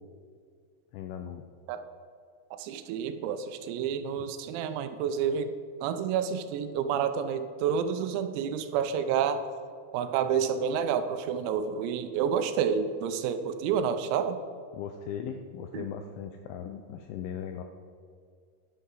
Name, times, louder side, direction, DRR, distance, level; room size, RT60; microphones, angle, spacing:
voice 1, 0.9-1.4 4.2-4.3 14.7-17.6, left 8 dB, 85° left, 6 dB, 2.7 m, -38 dB
voice 2, 2.5-5.5 5.8-9.4 9.9-14.4 15.7-15.9, right 7 dB, 90° right, 9 dB, 3.5 m, -29 dB
11.0 x 11.0 x 3.8 m, 2.2 s
omnidirectional pair, 5.9 m